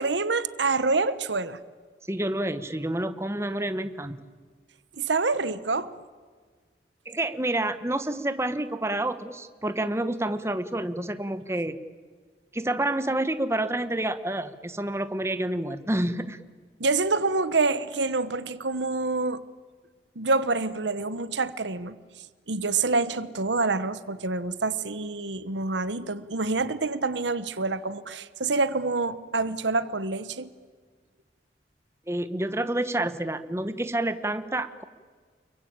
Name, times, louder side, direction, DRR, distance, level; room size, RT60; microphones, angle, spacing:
voice 1, 0.0-1.6 5.0-5.9 16.8-19.4 20.2-22.0 22.5-30.5, right 3 dB, 80° right, 1.2 m, -27 dB
voice 2, 2.1-4.2 7.0-11.8 12.5-16.4 32.1-34.8, right 1 dB, 15° right, 1.1 m, -28 dB
29.5 x 23.0 x 8.8 m
head